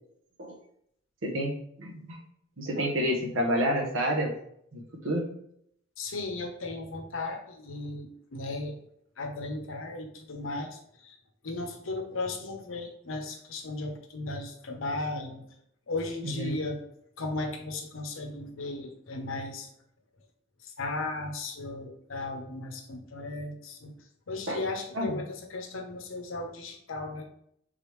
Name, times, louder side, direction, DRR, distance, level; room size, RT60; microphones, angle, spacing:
voice 1, 1.2-2.2 2.6-4.3 4.7-5.3 16.2-16.5 24.5-24.6 24.9-25.2, equal, 75° right, 1 dB, 0.9 m, -29 dB
voice 2, 6.0-8.8 9.2-11.2 11.4-15.4 15.9-16.8 17.2-19.7 20.6-23.9 24.3-27.3, left 2 dB, 75° left, 4 dB, 0.7 m, -36 dB
3.7 x 3.4 x 3.1 m, 0.71 s
head